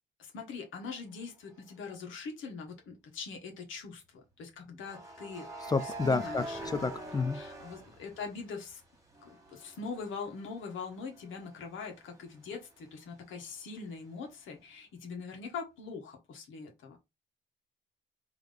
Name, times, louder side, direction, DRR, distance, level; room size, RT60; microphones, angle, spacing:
voice 1, 0.2-5.5 5.8-6.9 7.3-8.8 9.2-17.0, left 4 dB, 80° left, 1.4 m, -42 dB
sound 1, 1.5-1.7 4.8-8.7 9.1-12.7, right 1 dB, 15° right, 1.7 m, -45 dB
voice 2, 5.7-7.4, left 4 dB, 20° left, 0.4 m, -30 dB
3.8 x 3.1 x 3.3 m
cardioid pair, 90°, 20 cm